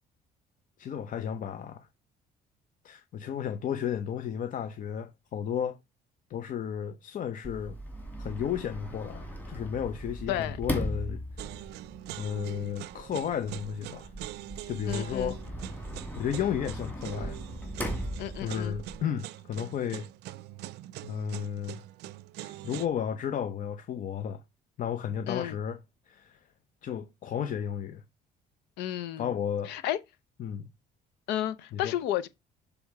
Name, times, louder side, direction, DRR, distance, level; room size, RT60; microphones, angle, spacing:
voice 1, 0.8-1.9 2.8-5.8 6.3-7.8 8.2-11.5 12.2-14.1 14.7-15.4 16.2-17.4 18.4-20.1 21.0-21.8 22.4-24.4 24.8-25.8 26.1-26.4 26.8-28.0 29.2-29.7 30.4-30.7 31.7-32.0, left 8 dB, 50° left, 0.7 m, -33 dB
Sliding door, 7.4-19.0, equal, 10° left, 2.3 m, -39 dB
sound 1, 11.4-22.9, right 15 dB, 80° right, 0.4 m, -43 dB
voice 2, 14.9-15.3 18.2-18.8 25.3-25.6 28.8-29.3 29.7-30.0 31.3-32.3, left 12 dB, 90° left, 0.7 m, -32 dB
7.0 x 3.5 x 4.7 m
cardioid pair, 110°, 17 cm